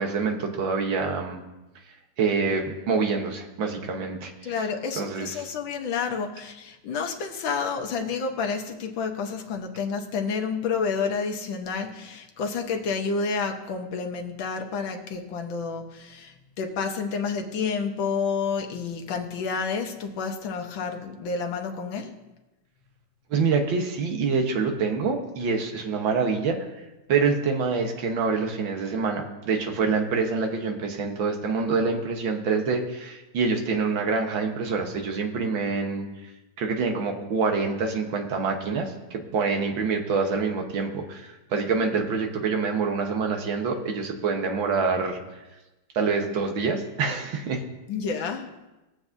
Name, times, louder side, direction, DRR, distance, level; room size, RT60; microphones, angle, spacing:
voice 1, 0.0-1.4 2.2-4.5 5.0-5.4 23.3-26.6 27.1-36.1 36.6-45.2 46.0-47.6, right 4 dB, 90° right, 4 dB, 1.9 m, -26 dB
voice 2, 4.4-22.1 47.9-48.5, left 5 dB, 85° left, 3 dB, 1.7 m, -29 dB
20.5 x 7.5 x 2.6 m, 1.1 s
omnidirectional pair, 2.0 m